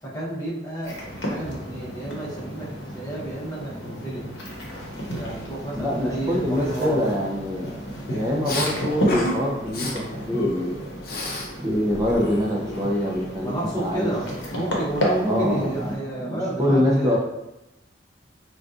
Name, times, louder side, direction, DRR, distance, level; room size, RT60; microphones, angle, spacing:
voice 1, 0.0-4.3 5.1-7.1 13.4-17.2, right 1 dB, 20° left, -8 dB, 0.9 m, -31 dB
sound 1, 0.8-16.0, equal, 80° left, 0.8 m, -32 dB
voice 2, 5.7-7.8 8.0-10.9 11.6-14.1 15.2-17.2, left 1 dB, 15° right, -2 dB, 0.5 m, -25 dB
Respiratory sounds, 8.4-8.7 9.1-9.4 9.7-9.9 10.3-11.5 11.8-13.2, left 1 dB, 50° left, 0.6 m, -31 dB
4.0 x 2.3 x 2.5 m, 0.92 s
head